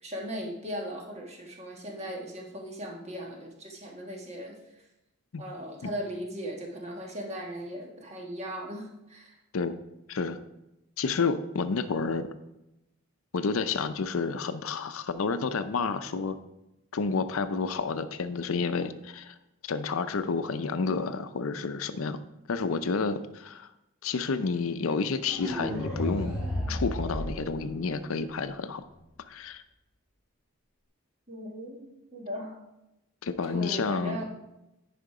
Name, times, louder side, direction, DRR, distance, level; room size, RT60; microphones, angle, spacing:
voice 1, 0.0-4.6 5.4-9.4 31.3-32.6 33.5-34.2, equal, 30° right, 0 dB, 1.6 m, -38 dB
voice 2, 10.1-10.4 11.0-12.3 13.3-16.4 16.9-19.3 19.6-22.2 22.5-23.7 24.0-26.4 26.7-28.8 29.3-29.6 33.2-34.2, left 4 dB, 75° left, 11 dB, 0.5 m, -30 dB
sound 1, 25.3-28.3, left 1 dB, 5° right, 1.6 m, -33 dB
10.5 x 5.0 x 4.9 m, 0.91 s
head